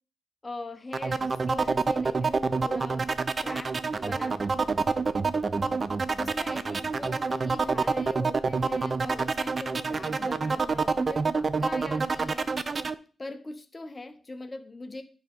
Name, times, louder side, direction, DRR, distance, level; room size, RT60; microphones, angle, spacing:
voice 1, 0.4-4.6 6.2-12.5 13.2-15.0, left 2 dB, 30° left, 0.8 m, -41 dB
sound 1, 0.9-12.9, right 4 dB, 40° right, 0.4 m, -27 dB
7.9 x 3.6 x 5.2 m
cardioid pair, 75°, 0 cm